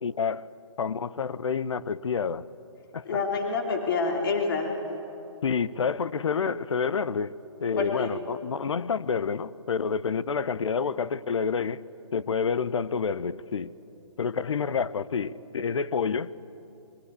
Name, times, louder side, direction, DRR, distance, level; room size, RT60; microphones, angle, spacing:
voice 1, 0.0-0.5 0.8-2.5 2.9-3.0 5.4-7.3 7.6-11.8 12.1-13.7 14.2-16.3, left 6 dB, 60° left, 0.8 m, -28 dB
voice 2, 3.0-4.8 7.8-8.1, left 4 dB, 45° left, 3.3 m, -27 dB
25.5 x 23.0 x 8.4 m
figure-of-eight pair, 145°, 17 cm